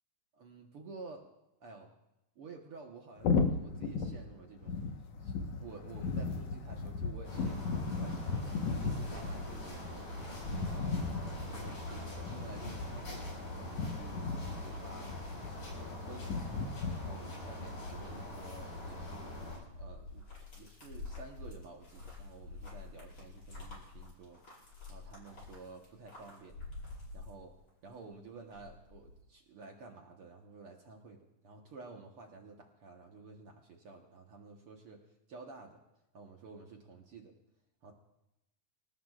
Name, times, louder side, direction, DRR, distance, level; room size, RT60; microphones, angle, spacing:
voice 1, 0.3-1.2 1.6-1.9 2.3-4.8 5.1-10.1 10.7-15.1 15.8-16.4 17.0-19.4 19.7-20.3 20.5-24.4 24.9-26.6 27.1-27.5 27.8-35.8 36.1-37.3 37.8-37.9, right 4 dB, 60° right, 1 dB, 1.6 m, -51 dB
sound 1, 3.2-17.1, left 4 dB, 60° left, 2.1 m, -36 dB
sound 2, 7.2-19.6, left 1 dB, 80° left, 8.2 m, -43 dB
sound 3, 18.6-27.9 28.3-29.2, left 3 dB, 35° left, 6.3 m, -49 dB
26.5 x 18.0 x 2.5 m, 0.90 s
omnidirectional pair, 4.0 m